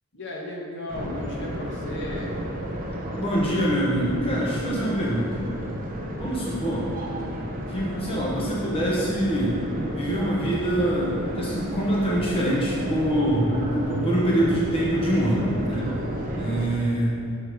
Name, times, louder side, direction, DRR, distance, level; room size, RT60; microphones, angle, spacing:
voice 1, 0.1-2.3, left 1 dB, 55° left, -2 dB, 1.3 m, -35 dB
sound 1, 0.9-16.7, equal, 40° right, 0.9 m, -33 dB
voice 2, 3.1-5.5 6.2-6.9 7.7-9.5 9.9-15.9 16.4-17.1, right 1 dB, 25° left, -5 dB, 1.0 m, -24 dB
6.5 x 6.2 x 4.6 m, 2.7 s
head